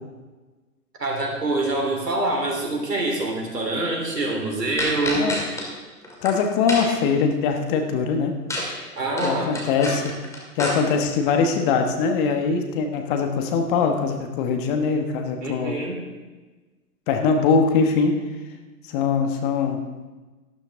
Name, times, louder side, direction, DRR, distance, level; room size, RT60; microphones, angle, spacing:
voice 1, 1.0-5.3 9.0-9.5 15.4-16.0, right 2 dB, 80° right, 0 dB, 3.8 m, -25 dB
sound 1, 4.8-5.7 6.0-6.3 6.7-7.1 8.5-8.7 9.0-10.7, left 1 dB, 5° left, 2.2 m, -28 dB
voice 2, 6.2-8.3 9.2-10.2 10.6-15.8 17.1-18.2 18.9-19.8, left 5 dB, 30° left, 5 dB, 1.3 m, -22 dB
12.5 x 12.0 x 3.7 m, 1.3 s
figure-of-eight pair, 120°, 48 cm